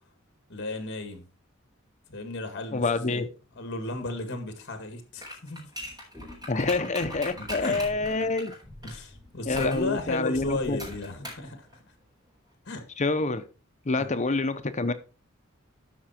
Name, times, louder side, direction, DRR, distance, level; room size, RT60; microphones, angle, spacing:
voice 1, 0.5-1.2 2.1-3.3 3.6-5.7 7.4-7.8 8.8-11.8 12.7-12.8 13.9-14.2, left 2 dB, 55° left, 1.9 m, -35 dB
voice 2, 2.7-3.3 6.5-8.5 9.5-10.8 13.0-13.4 13.9-14.9, left 3 dB, 35° left, 0.8 m, -27 dB
sound 1, 5.2-9.0 9.6-9.9 10.8-11.5 11.7-11.8, left 1 dB, 20° right, 4.4 m, -39 dB
sound 2, 5.8-11.2, left 1 dB, ahead, 3.5 m, -46 dB
12.5 x 5.8 x 4.3 m
head